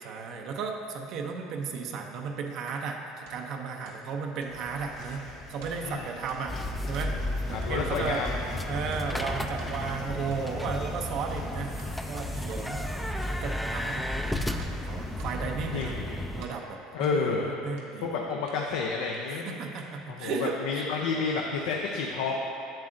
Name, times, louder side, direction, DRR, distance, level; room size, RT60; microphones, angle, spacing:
voice 1, 0.0-6.6 6.9-7.2 7.5-8.2 8.7-11.7 12.1-15.9 16.3-18.2 19.3-20.6 21.2-21.3, right 5 dB, 60° right, 2 dB, 0.6 m, -35 dB
sound 1, 2.7-2.8 3.3-3.4 3.8-4.0 4.4-4.5 5.0-5.2 5.6-5.8 6.3-6.4 6.8-7.1 7.6-7.8 8.2-8.4 8.9-9.1 9.6-9.7 10.3-10.4 11.1-11.2 11.8-11.9 12.5-12.6 13.2-13.4 13.9-14.0 14.6-15.3 15.7-16.6 17.0-17.2 17.8-17.9 18.5-18.6 19.1-19.2 19.8-19.9, right 4 dB, 85° right, 1.0 m, -51 dB
sound 2, 4.5-15.4, left 2 dB, 55° left, 1.4 m, -43 dB
sound 3, 6.5-16.5, left 1 dB, 5° left, 0.3 m, -33 dB
voice 2, 7.5-8.3 15.7-16.2 16.9-17.5 18.0-19.6 20.1-22.4, left 4 dB, 80° left, -1 dB, 0.5 m, -30 dB
7.4 x 7.4 x 2.6 m, 2.6 s
supercardioid pair, 105°, 0 cm